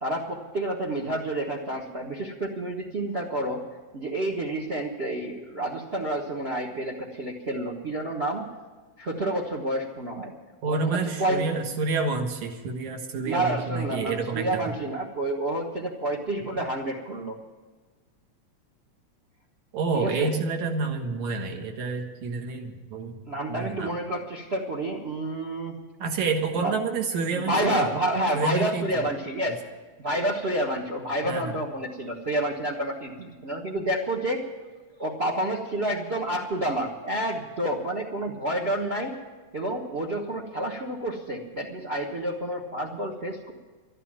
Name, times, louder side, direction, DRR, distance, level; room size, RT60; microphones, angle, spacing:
voice 1, 0.0-3.6 3.9-8.4 9.0-10.3 10.7-11.4 13.2-17.4 19.9-20.4 23.2-25.8 26.6-26.7 27.3-29.6 30.0-34.4 35.0-39.1 39.5-43.5, right 1 dB, 60° right, 0 dB, 0.6 m, -29 dB
voice 2, 10.6-14.7 19.7-23.2 23.5-24.0 26.0-27.9 28.3-28.9 29.5-29.6 31.2-31.6, right 4 dB, 75° right, 4 dB, 2.7 m, -29 dB
12.5 x 11.0 x 8.8 m, 1.3 s
omnidirectional pair, 3.4 m